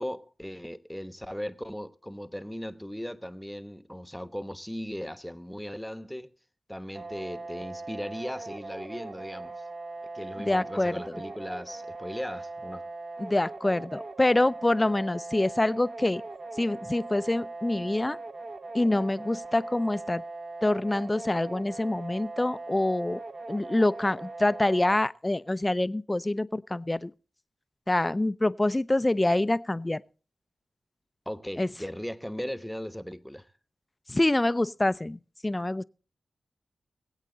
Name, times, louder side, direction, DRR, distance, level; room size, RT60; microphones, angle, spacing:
voice 1, 0.0-6.3 6.7-9.6 10.1-12.9 31.2-33.5, equal, 5° left, 1.1 m, -38 dB
sound 1, 6.9-25.0, right 2 dB, 55° right, 1.4 m, -40 dB
voice 2, 10.4-11.0 13.2-16.2 16.6-18.2 18.7-20.2 20.6-23.2 23.5-27.1 27.9-30.0 31.6-31.7 34.1-35.8, left 1 dB, 25° left, 0.6 m, -26 dB
21.5 x 8.2 x 3.9 m
cardioid pair, 40°, 0 cm